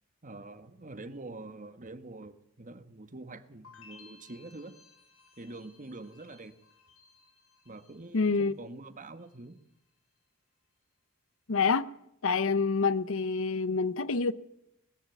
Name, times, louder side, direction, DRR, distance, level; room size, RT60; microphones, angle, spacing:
voice 1, 0.2-4.8 5.4-6.5 7.6-9.6, right 2 dB, 40° right, 1.4 m, -45 dB
sound 1, 3.6-8.7 9.0-9.6, left 4 dB, 85° left, 7.2 m, -59 dB
voice 2, 8.1-8.5 11.5-11.9 12.2-14.3, left 4 dB, 70° left, 0.7 m, -27 dB
20.5 x 14.5 x 9.2 m
head